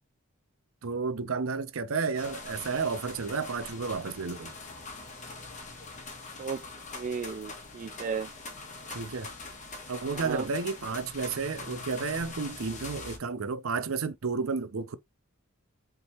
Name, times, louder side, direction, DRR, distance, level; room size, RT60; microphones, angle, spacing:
voice 1, 0.8-4.5 8.9-9.3 9.9-15.0, right 4 dB, 85° right, 0.6 m, -32 dB
sound 1, 2.2-13.2, left 3 dB, 40° left, 1.3 m, -43 dB
voice 2, 6.9-8.3 10.1-10.5, right 5 dB, 40° right, 0.3 m, -34 dB
4.0 x 3.5 x 2.9 m
head